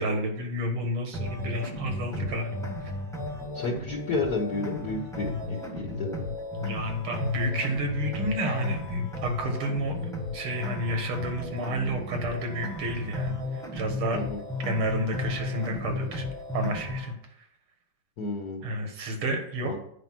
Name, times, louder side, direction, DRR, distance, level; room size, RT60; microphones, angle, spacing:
voice 1, 0.0-2.7 6.6-14.2 14.6-16.3 16.5-17.1 18.6-19.8, right 1 dB, 90° right, 4 dB, 2.4 m, -30 dB
sound 1, 1.1-17.1, left 2 dB, ahead, 1.0 m, -34 dB
voice 2, 3.5-6.2 14.1-14.4 18.2-18.6 19.6-19.8, left 3 dB, 50° left, -1 dB, 1.6 m, -31 dB
9.1 x 5.1 x 6.0 m, 0.69 s
omnidirectional pair, 2.3 m